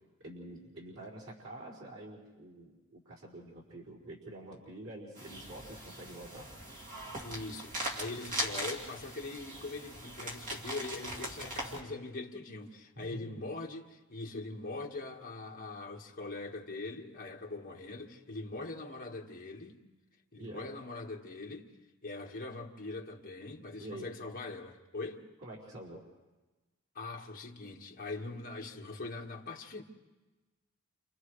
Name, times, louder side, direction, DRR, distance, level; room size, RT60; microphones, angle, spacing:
voice 1, 0.2-6.4 12.9-13.4 20.3-20.7 23.7-24.1 25.4-26.0, right 1 dB, 85° right, 4.9 m, -47 dB
sound 1, 5.2-11.8, right 1 dB, 35° right, 2.6 m, -40 dB
voice 2, 7.2-19.8 20.3-21.7 22.0-25.3 26.9-29.8, left 3 dB, 40° left, 1.7 m, -42 dB
30.0 x 28.0 x 3.3 m
head